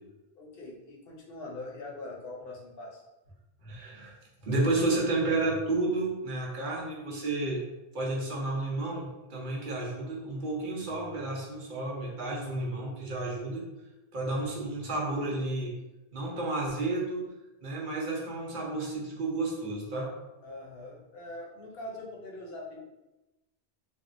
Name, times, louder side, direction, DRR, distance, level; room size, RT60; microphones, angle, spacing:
voice 1, 0.4-3.0 20.4-22.8, left 2 dB, 70° left, -1 dB, 0.8 m, -42 dB
voice 2, 3.6-4.1 4.4-7.6 7.9-13.6 14.1-15.7 16.1-17.2 17.6-20.1, right 2 dB, 55° right, -3 dB, 0.8 m, -31 dB
3.5 x 2.1 x 2.5 m, 1.0 s
omnidirectional pair, 1.0 m